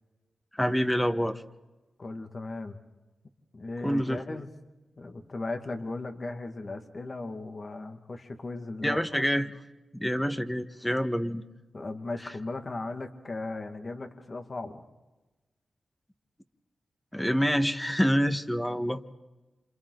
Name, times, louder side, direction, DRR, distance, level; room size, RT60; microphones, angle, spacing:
voice 1, 0.5-1.4 3.8-4.4 8.8-9.5 9.9-11.4 17.1-19.0, equal, 10° left, 8 dB, 1.7 m, -27 dB
voice 2, 2.0-2.8 3.5-4.5 5.0-9.0 11.7-14.8, left 2 dB, 45° left, 6 dB, 2.4 m, -37 dB
28.0 x 27.5 x 4.1 m, 1.1 s
cardioid pair, 45°, 0 cm